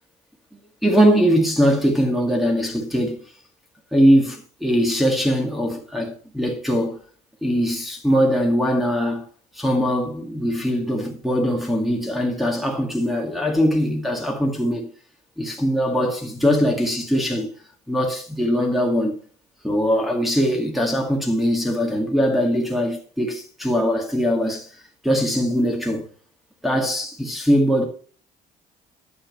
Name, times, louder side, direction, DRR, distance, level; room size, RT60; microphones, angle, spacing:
voice 1, 0.8-3.2 3.9-7.0 7.4-9.2 9.6-14.9 15.4-17.5 17.9-19.2 19.6-24.7 25.0-26.0 26.6-27.8, equal, ahead, 2.1 m, -21 dB
10.0 x 6.5 x 5.4 m
cardioid pair, 110°, 17 cm